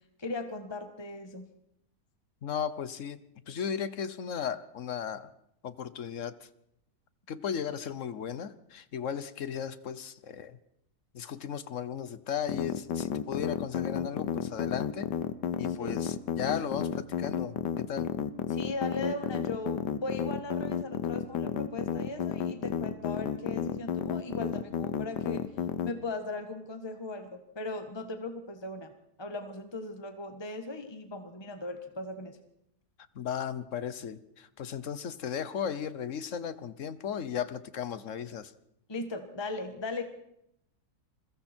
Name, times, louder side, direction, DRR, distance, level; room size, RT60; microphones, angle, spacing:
voice 1, 0.2-1.5 15.8-16.0 18.5-25.4 25.8-28.9 29.2-32.4 38.9-40.0, left 2 dB, 15° left, 6 dB, 1.5 m, -38 dB
voice 2, 2.4-3.2 3.5-5.3 5.6-6.3 7.3-10.6 11.1-15.1 15.6-18.1 33.1-38.5, left 8 dB, 50° left, 14 dB, 1.3 m, -36 dB
sound 1, 12.5-25.9, left 8 dB, 85° left, 1.6 m, -31 dB
28.5 x 21.5 x 4.5 m, 0.78 s
omnidirectional pair, 1.8 m